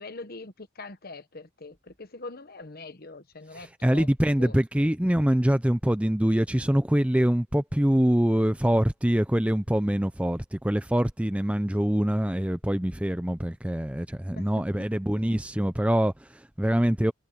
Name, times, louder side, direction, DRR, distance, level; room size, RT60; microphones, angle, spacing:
voice 1, 0.0-4.1 4.4-4.5 14.3-14.9, left 3 dB, 45° left, 1.3 m, -43 dB
voice 2, 3.5-17.1, equal, 5° right, 0.6 m, -24 dB
head